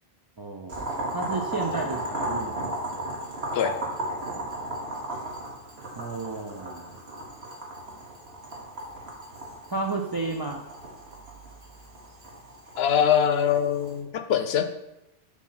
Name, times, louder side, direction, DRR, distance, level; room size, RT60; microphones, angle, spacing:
voice 1, 0.4-0.8 1.1-2.7 6.0-7.0 9.7-10.6, right 3 dB, 40° right, 1 dB, 0.3 m, -32 dB
Boiling, 0.7-14.0, right 1 dB, 75° right, 1.6 m, -35 dB
voice 2, 12.8-14.6, left 8 dB, 75° left, 8 dB, 0.8 m, -23 dB
4.6 x 4.2 x 5.6 m, 0.88 s
omnidirectional pair, 1.1 m